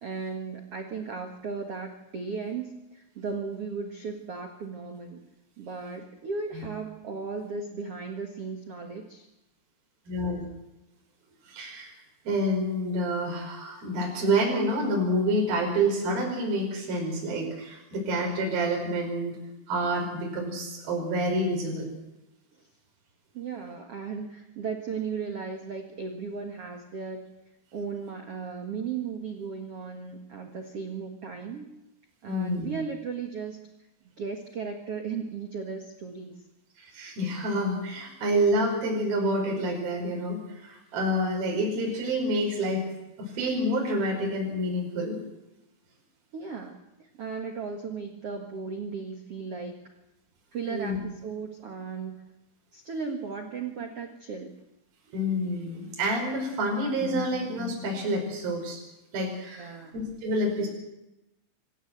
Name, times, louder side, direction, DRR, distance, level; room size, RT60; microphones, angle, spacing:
voice 1, 0.0-5.2 5.6-9.3 22.6-22.7 23.3-27.2 27.7-31.7 32.2-33.6 34.2-36.4 46.3-49.8 50.5-52.2 52.7-54.5 59.6-59.9, right 5 dB, 85° right, 4 dB, 1.3 m, -36 dB
voice 2, 10.1-10.5 11.5-11.9 12.2-19.4 19.7-21.9 32.3-32.7 36.8-42.8 43.2-45.2 50.7-51.0 55.1-58.8 59.1-60.7, right 1 dB, 50° right, 0 dB, 6.7 m, -28 dB
25.5 x 15.5 x 8.0 m, 0.95 s
omnidirectional pair, 5.5 m